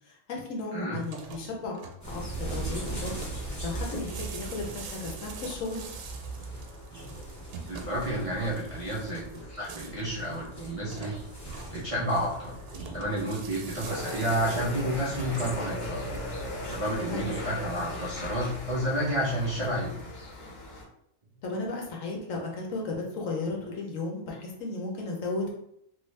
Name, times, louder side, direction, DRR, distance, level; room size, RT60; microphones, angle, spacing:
voice 1, 0.1-1.8 2.1-3.1 3.6-5.8 17.1-17.3 21.4-25.5, left 3 dB, 65° left, -1 dB, 1.0 m, -34 dB
sound 1, 0.9-16.6, right 5 dB, 90° right, 1.2 m, -45 dB
sound 2, 2.0-18.8, right 2 dB, 15° left, 0.9 m, -40 dB
voice 2, 7.7-9.2 9.6-11.1 11.7-12.5 12.9-16.0 16.7-20.0, equal, 35° right, -8 dB, 0.5 m, -30 dB
sound 3, 13.8-20.8, left 1 dB, 90° left, 1.3 m, -38 dB
3.1 x 2.5 x 3.2 m, 0.75 s
omnidirectional pair, 1.6 m